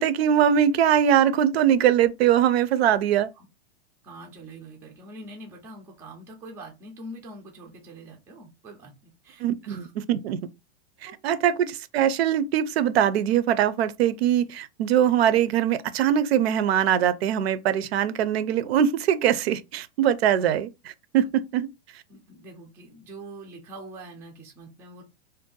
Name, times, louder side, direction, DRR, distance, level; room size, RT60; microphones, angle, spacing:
voice 1, 0.0-3.3 9.4-10.4 11.0-21.7, right 10 dB, 65° right, 0.5 m, -22 dB
voice 2, 4.0-9.9 11.1-11.2 21.2-21.3 22.1-25.0, right 1 dB, 10° right, 0.3 m, -44 dB
2.6 x 2.1 x 3.7 m
hypercardioid pair, 145°, 34 cm